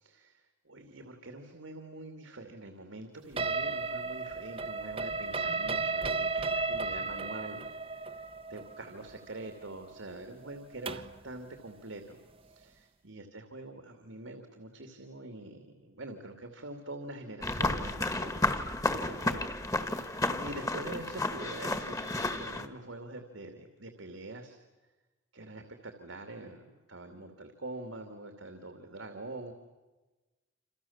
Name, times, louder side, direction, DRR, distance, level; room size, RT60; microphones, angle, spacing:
voice 1, 0.0-7.6 7.9-8.2 8.5-24.6 25.3-29.5, right 2 dB, 80° right, 5 dB, 2.7 m, -45 dB
sound 1, 3.4-11.2, right 4 dB, 30° right, 0.9 m, -34 dB
sound 2, 17.4-22.7, left 2 dB, 15° left, 1.6 m, -32 dB
28.0 x 28.0 x 7.3 m, 1.2 s
head